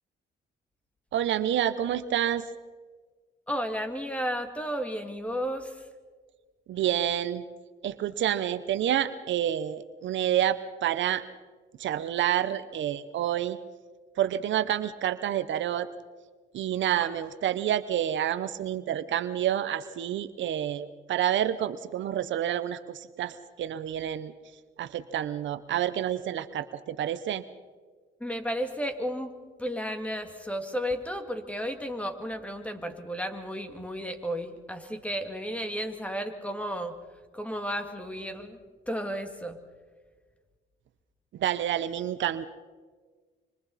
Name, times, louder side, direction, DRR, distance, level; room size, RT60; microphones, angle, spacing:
voice 1, 1.1-2.4 6.7-7.4 7.8-11.2 11.8-13.6 14.2-15.9 16.5-24.3 24.8-27.4 41.3-42.5, right 11 dB, 70° right, 12 dB, 0.9 m, -28 dB
voice 2, 3.5-5.9 17.0-17.2 28.2-29.3 29.6-36.9 37.3-38.6 38.9-39.6, equal, 5° left, 6 dB, 2.4 m, -33 dB
26.0 x 25.5 x 4.2 m, 1.5 s
cardioid pair, 90°, 20 cm